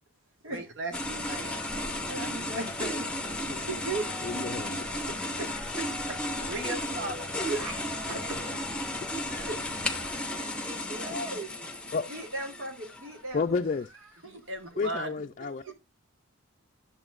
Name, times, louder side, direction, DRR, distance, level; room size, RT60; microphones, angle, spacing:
voice 1, 0.5-2.5 6.5-7.5 14.2-15.1 15.7-15.8, right 2 dB, 60° right, 1.4 m, -38 dB
sound 1, 0.9-13.2, left 1 dB, 5° left, 0.7 m, -34 dB
voice 2, 1.2-3.1 3.5-4.1 5.1-6.5 7.4-8.6 9.2-10.4 10.9-11.5 12.1-13.4 14.2-14.4 15.7-15.8, right 2 dB, 85° right, 2.8 m, -38 dB
sound 2, 3.8-11.2, equal, 20° right, 5.9 m, -48 dB
voice 3, 4.2-4.8 11.9-12.1 13.3-13.9 14.8-15.7, left 4 dB, 35° left, 0.4 m, -31 dB
11.0 x 7.0 x 2.5 m
head